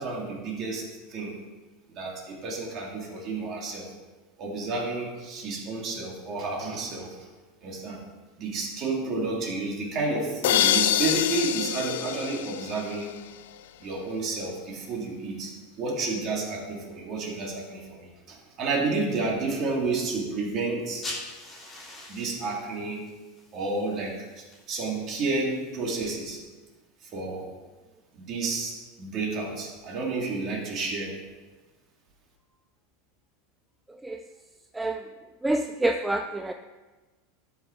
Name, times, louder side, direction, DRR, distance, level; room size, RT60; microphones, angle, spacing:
voice 1, 0.0-1.4 1.9-3.9 4.4-7.3 7.6-8.0 8.4-13.1 13.8-21.1 22.1-23.0 23.5-26.4 27.0-27.5 28.1-31.1, right 3 dB, 35° right, -1 dB, 2.3 m, -31 dB
sound 1, 10.4-13.3, left 12 dB, 80° left, 0.4 m, -26 dB
sound 2, 20.8-26.0, left 2 dB, 10° left, 2.7 m, -44 dB
voice 2, 33.9-34.2 34.7-35.1 35.4-36.5, right 2 dB, 5° right, 6 dB, 0.3 m, -27 dB
12.0 x 5.7 x 4.4 m, 1.2 s
supercardioid pair, 155°, 0 cm